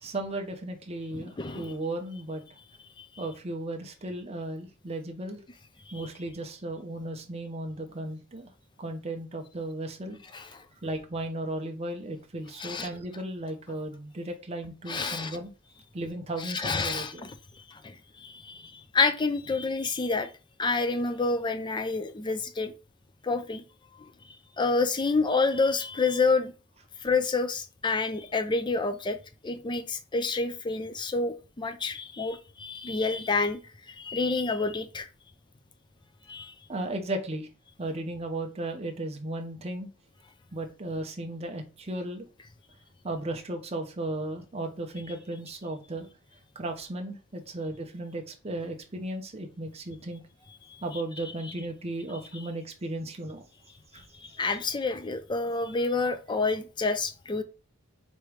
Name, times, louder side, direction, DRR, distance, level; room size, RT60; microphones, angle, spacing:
voice 1, 0.0-2.4 3.2-5.4 5.9-8.5 8.8-10.2 10.8-15.5 15.9-17.2 36.7-37.5 37.8-39.9 40.5-42.2 43.0-46.1 46.5-50.2 50.8-53.4 53.9-54.0, right 1 dB, 30° right, 0.7 m, -35 dB
voice 2, 1.1-1.7 10.3-10.4 12.6-12.9 14.9-15.4 16.4-17.3 17.8-17.9 18.2-20.3 20.6-22.7 23.2-23.6 24.6-26.5 27.0-29.2 29.4-33.6 34.0-35.1 36.3-36.5 54.2-57.4, left 3 dB, 20° left, 0.4 m, -28 dB
3.2 x 3.0 x 4.7 m
head